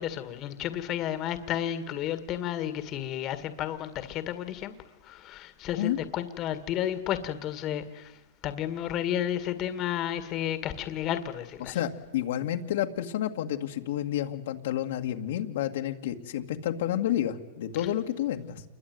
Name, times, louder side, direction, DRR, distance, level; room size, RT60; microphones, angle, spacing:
voice 1, 0.0-4.7 5.0-11.8, left 11 dB, 35° left, 11 dB, 1.9 m, -32 dB
voice 2, 11.6-18.6, left 11 dB, 70° left, 3 dB, 2.1 m, -30 dB
28.0 x 22.0 x 9.5 m, 1.1 s
supercardioid pair, 135°, 0 cm